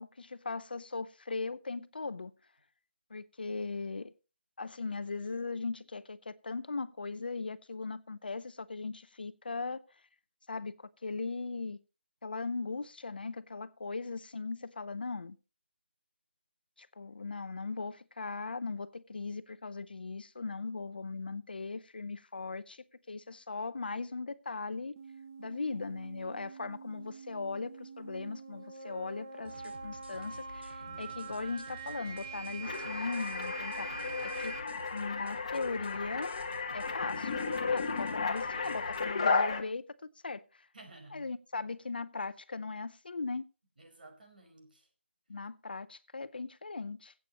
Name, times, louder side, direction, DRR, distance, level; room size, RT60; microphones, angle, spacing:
voice 1, 0.0-2.3 3.1-4.1 4.6-9.8 10.5-10.7 11.0-11.8 12.2-15.4 16.8-24.9 25.4-34.6 34.9-36.3 36.7-39.8 40.2-40.4 41.1-43.5 45.3-47.1, left 4 dB, 55° left, 0.7 m, -39 dB
sound 1, 25.0-34.6, right 5 dB, 20° right, 0.9 m, -45 dB
sound 2, 29.4-39.0, right 2 dB, 80° right, 2.5 m, -51 dB
sound 3, 32.6-39.6, left 4 dB, 30° left, 1.3 m, -34 dB
voice 2, 40.7-41.3 43.8-44.9, right 2 dB, 50° right, 5.0 m, -55 dB
21.0 x 8.6 x 3.0 m
figure-of-eight pair, 175°, 6 cm